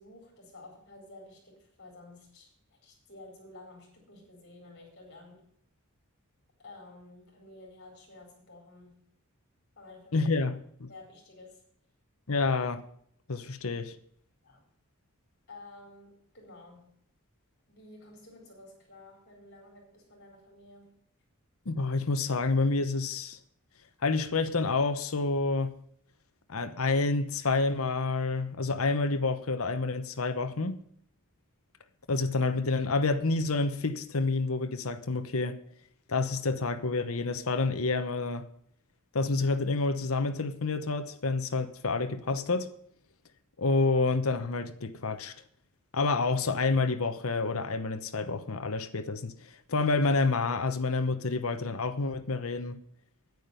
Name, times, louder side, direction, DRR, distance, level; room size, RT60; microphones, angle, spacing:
voice 1, 0.0-5.5 6.6-9.1 9.8-10.4 10.9-11.6 14.4-14.6 15.5-17.0 17.7-21.0, left 2 dB, 50° left, 4.3 m, -52 dB
voice 2, 10.1-10.9 12.3-12.8 13.3-14.0 21.7-23.4 24.0-25.7 26.5-30.8 32.1-35.6 36.1-38.4 39.1-42.7 43.6-45.3 45.9-52.8, left 3 dB, 70° left, 0.9 m, -28 dB
9.5 x 9.3 x 6.8 m
head